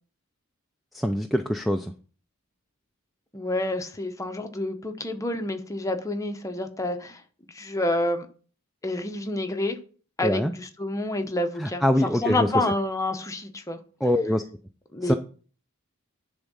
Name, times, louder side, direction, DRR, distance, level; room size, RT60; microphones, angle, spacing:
voice 1, 0.9-1.9 10.2-10.5 11.6-12.6 14.0-14.4 15.0-15.1, equal, ahead, 7 dB, 0.3 m, -24 dB
voice 2, 3.3-7.2 7.5-8.3 8.8-9.8 10.2-13.8 14.9-15.1, left 1 dB, 15° left, 6 dB, 0.8 m, -28 dB
10.5 x 3.6 x 5.4 m, 0.41 s
head